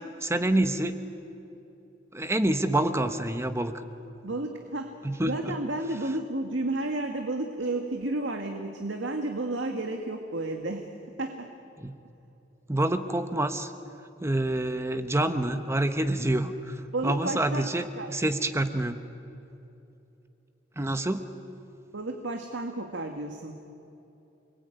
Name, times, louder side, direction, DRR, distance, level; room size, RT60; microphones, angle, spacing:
voice 1, 0.2-1.0 2.1-3.9 5.0-5.5 11.8-12.0 12.7-13.7 14.2-19.0 20.8-21.3, right 1 dB, 15° right, 8 dB, 1.1 m, -27 dB
voice 2, 4.2-4.9 5.2-11.5 16.9-17.7 18.0-18.1 21.9-23.6, right 2 dB, 85° right, 3 dB, 1.9 m, -32 dB
29.0 x 21.5 x 9.2 m, 2.9 s
head